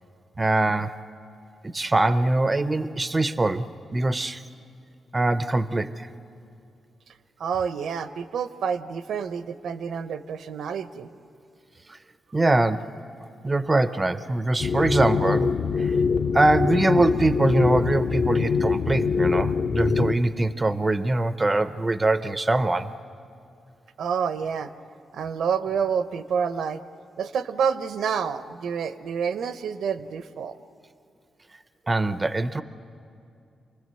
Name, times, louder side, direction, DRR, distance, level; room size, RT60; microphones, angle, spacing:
voice 1, 0.4-1.0 1.6-4.4 5.1-6.1 11.9-12.0 12.3-12.9 13.4-15.5 15.8-15.9 16.3-22.9 31.9-32.6, right 2 dB, 20° right, 13 dB, 0.5 m, -23 dB
voice 2, 7.4-11.1 24.0-24.7 25.1-26.8 27.2-30.6, right 6 dB, 80° right, 12 dB, 0.8 m, -28 dB
sound 1, 14.6-20.1, left 5 dB, 50° left, 0.7 m, -24 dB
28.0 x 19.5 x 7.8 m, 2.5 s
wide cardioid pair, 155°, 0 cm